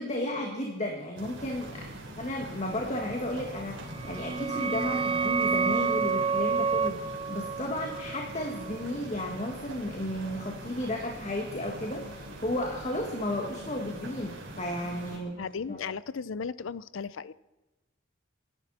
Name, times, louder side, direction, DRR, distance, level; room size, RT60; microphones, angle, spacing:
voice 1, 0.0-1.9 2.2-15.4 15.7-15.8, left 1 dB, 35° left, 1 dB, 2.0 m, -33 dB
sound 1, 1.2-15.2, right 1 dB, 65° right, 3.9 m, -43 dB
sound 2, 3.9-9.3, right 5 dB, 25° right, 0.4 m, -29 dB
voice 2, 15.4-17.3, left 5 dB, 70° left, 18 dB, 0.5 m, -36 dB
27.5 x 12.0 x 4.3 m, 1.1 s
head